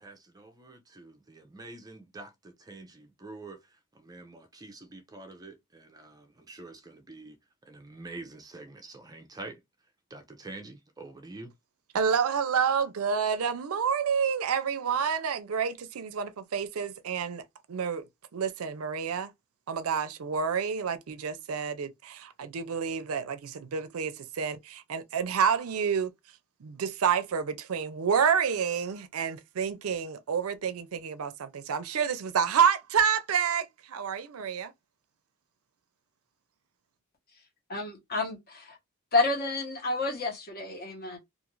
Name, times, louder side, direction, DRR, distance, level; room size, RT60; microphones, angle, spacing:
voice 1, 0.0-7.4 7.6-9.6 10.1-11.5, right 2 dB, 15° right, 0.4 m, -46 dB
voice 2, 11.9-17.4 17.7-18.1 18.3-19.3 19.7-26.1 26.6-34.7, right 7 dB, 70° right, 0.5 m, -29 dB
voice 3, 37.7-38.8 39.1-41.2, left 3 dB, 45° left, 1.0 m, -30 dB
2.5 x 2.5 x 2.9 m
head